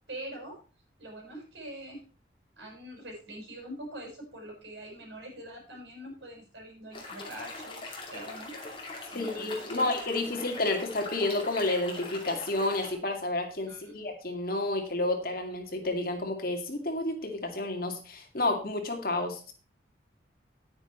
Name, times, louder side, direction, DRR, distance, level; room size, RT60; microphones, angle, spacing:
voice 1, 0.1-0.6 1.0-2.0 2.6-8.5 9.1-9.9 13.7-13.9, right 1 dB, 75° right, 0 dB, 6.3 m, -44 dB
sound 1, 6.9-12.9, left 2 dB, 25° left, 2.7 m, -42 dB
voice 2, 9.1-19.5, left 2 dB, 50° left, 3 dB, 2.2 m, -30 dB
10.0 x 9.2 x 4.4 m, 0.36 s
head